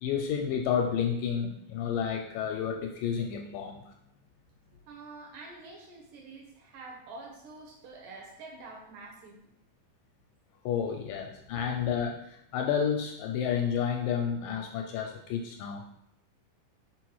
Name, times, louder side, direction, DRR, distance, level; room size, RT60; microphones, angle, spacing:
voice 1, 0.0-3.8 10.7-15.8, left 7 dB, 80° left, 3 dB, 2.0 m, -30 dB
voice 2, 4.9-9.4 11.6-11.7, right 3 dB, 70° right, 0 dB, 2.7 m, -47 dB
5.6 x 4.5 x 4.6 m, 0.81 s
omnidirectional pair, 4.2 m